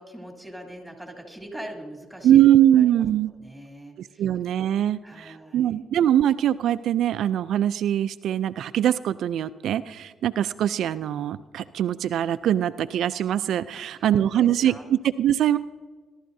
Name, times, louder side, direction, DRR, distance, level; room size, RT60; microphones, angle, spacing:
voice 1, 0.0-2.4 2.7-4.3 5.0-5.8 13.7-14.1 14.3-14.9, right 1 dB, ahead, 1 dB, 2.8 m, -42 dB
voice 2, 2.2-3.3 4.0-15.6, right 11 dB, 75° right, 12 dB, 0.3 m, -22 dB
21.0 x 12.0 x 2.7 m, 1.3 s
cardioid pair, 90°, 0 cm